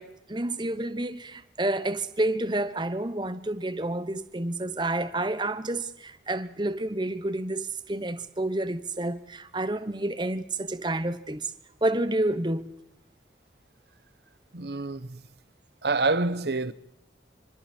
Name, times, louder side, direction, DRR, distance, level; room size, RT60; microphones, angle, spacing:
voice 1, 0.0-11.5 11.8-12.7, right 1 dB, 25° right, 1.1 m, -29 dB
voice 2, 14.5-15.2 15.8-16.7, right 3 dB, 65° right, 1.0 m, -27 dB
27.0 x 25.5 x 4.5 m
head